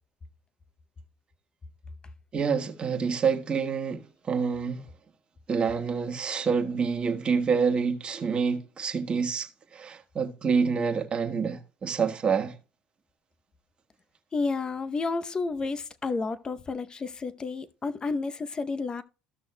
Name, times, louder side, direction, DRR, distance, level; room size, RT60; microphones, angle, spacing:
voice 1, 2.3-4.9 5.5-12.5, right 5 dB, 35° right, 1.3 m, -27 dB
voice 2, 14.3-19.0, left 4 dB, 25° left, 0.7 m, -31 dB
15.0 x 6.2 x 2.2 m
supercardioid pair, 95°, 3 cm